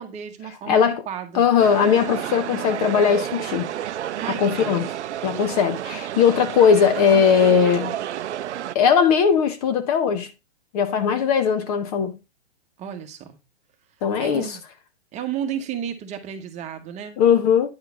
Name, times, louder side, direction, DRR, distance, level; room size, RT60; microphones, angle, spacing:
voice 1, 0.0-1.5 4.2-4.8 12.8-13.4 14.2-14.6 15.1-17.2, right 9 dB, 20° right, 1.2 m, -33 dB
voice 2, 0.7-1.0 1.3-3.7 4.4-4.8 5.2-7.9 8.7-10.3 10.7-12.1 14.0-14.6 17.2-17.7, left 7 dB, 35° left, 0.8 m, -19 dB
sound 1, 1.6-8.7, right 11 dB, 90° right, 0.5 m, -30 dB
9.7 x 3.8 x 4.5 m
hypercardioid pair, 140°, 33 cm